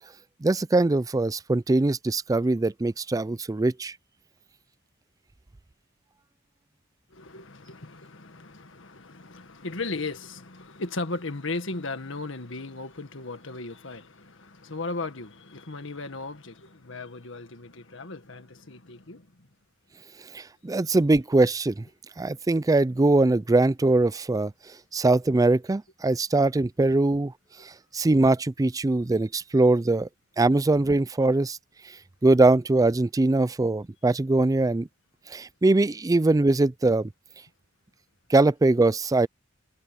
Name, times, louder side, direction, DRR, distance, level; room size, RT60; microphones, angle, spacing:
voice 1, 0.4-3.9 20.3-21.8 22.2-24.5 24.9-27.3 27.6-30.1 30.4-31.6 31.9-32.0 32.2-34.9 35.3-37.1 38.3-39.3, right 2 dB, 15° right, 0.4 m, -22 dB
voice 2, 7.1-19.5 33.5-33.6, left 3 dB, 70° left, 1.8 m, -36 dB
head